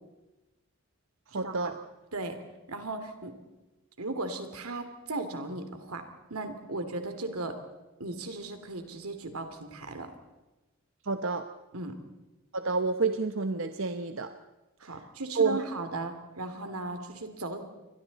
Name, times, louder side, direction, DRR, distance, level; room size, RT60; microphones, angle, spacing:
voice 1, 1.3-1.7 11.0-11.5 12.5-14.3 15.3-15.7, right 4 dB, 60° right, 8 dB, 0.9 m, -29 dB
voice 2, 2.7-3.3 4.0-7.6 8.0-10.1 11.7-12.0 14.8-17.6, right 2 dB, 90° right, 7 dB, 2.8 m, -36 dB
29.0 x 23.5 x 4.2 m, 1.1 s
head